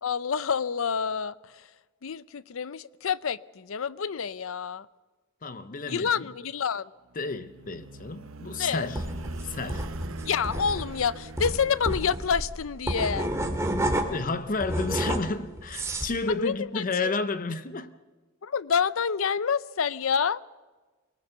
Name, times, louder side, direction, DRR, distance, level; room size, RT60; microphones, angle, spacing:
voice 1, 0.0-1.7 2.0-4.9 5.9-6.9 8.6-8.9 10.3-13.3 16.3-17.1 18.4-20.4, left 6 dB, 75° left, 0.6 m, -28 dB
voice 2, 5.4-6.1 7.2-9.0 9.4-9.9 14.1-18.0, left 3 dB, 40° left, 0.7 m, -31 dB
sound 1, 7.2-12.9, right 2 dB, 80° right, 0.9 m, -42 dB
sound 2, 9.0-14.3 14.6-16.2, right 1 dB, 15° right, 2.3 m, -30 dB
24.5 x 19.0 x 6.9 m
head